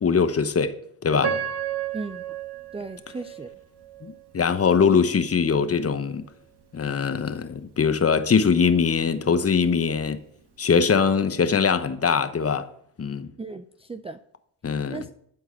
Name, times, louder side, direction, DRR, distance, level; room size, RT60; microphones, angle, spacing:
voice 1, 0.0-0.8 1.0-1.3 4.0-6.3 6.7-10.2 10.6-12.7 13.0-13.3 14.6-15.0, left 6 dB, 30° left, 0.9 m, -22 dB
Piano, 1.2-4.2 4.8-4.9 5.6-5.8, right 8 dB, 55° right, 1.6 m, -32 dB
voice 2, 1.9-2.3 2.7-3.5 13.4-14.2 14.9-15.1, right 3 dB, 15° right, 0.4 m, -36 dB
11.5 x 4.6 x 7.5 m
cardioid pair, 80°, 46 cm